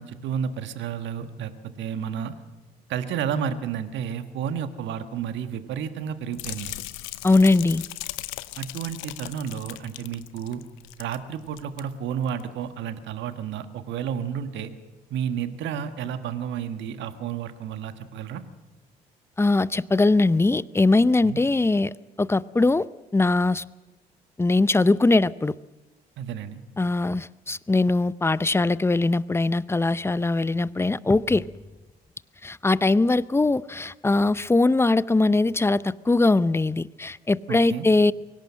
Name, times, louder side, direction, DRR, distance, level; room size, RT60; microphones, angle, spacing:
voice 1, 0.0-2.3 2.9-6.7 8.6-10.6 11.0-14.7 15.1-18.4 21.2-21.4 26.2-26.6 37.5-37.9, right 8 dB, 65° right, 9 dB, 1.5 m, -31 dB
sound 1, 6.3-11.2 11.4-11.8 12.3-12.4, left 18 dB, 70° left, 0.8 m, -38 dB
voice 2, 7.2-7.8 19.4-21.9 22.2-22.9 23.1-23.6 24.4-25.5 26.8-31.5 32.4-38.1, left 2 dB, 10° left, 19 dB, 0.6 m, -21 dB
23.5 x 17.5 x 7.6 m, 1.1 s
hypercardioid pair, 50°, 21 cm